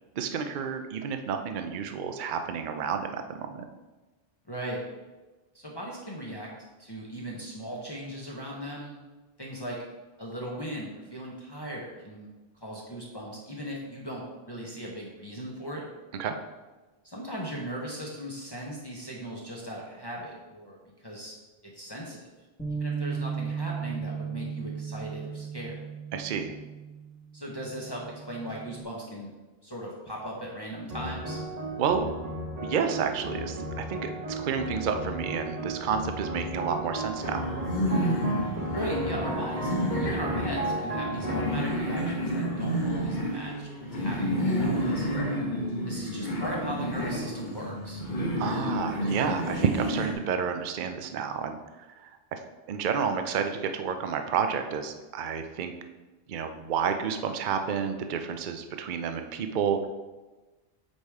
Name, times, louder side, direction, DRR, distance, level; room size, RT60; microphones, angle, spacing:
voice 1, 0.1-3.6 16.2-16.4 26.1-26.5 31.8-32.1 32.6-37.4 48.4-52.4 52.7-55.7 56.3-59.9, right 6 dB, 55° right, 6 dB, 0.7 m, -30 dB
voice 2, 4.5-4.8 5.5-6.5 6.8-9.0 9.4-9.8 10.2-12.3 12.6-15.9 17.0-21.3 21.6-22.2 22.7-25.8 27.3-29.3 29.6-31.4 38.7-45.1 45.5-48.0, right 1 dB, 25° left, -4 dB, 1.1 m, -38 dB
Bass guitar, 22.6-28.8, right 6 dB, 5° left, 1.3 m, -36 dB
sound 1, 30.9-43.4, right 1 dB, 40° right, 1.1 m, -34 dB
sound 2, 37.2-50.1, equal, 50° left, 1.2 m, -30 dB
8.1 x 5.0 x 3.6 m, 1.2 s
omnidirectional pair, 1.1 m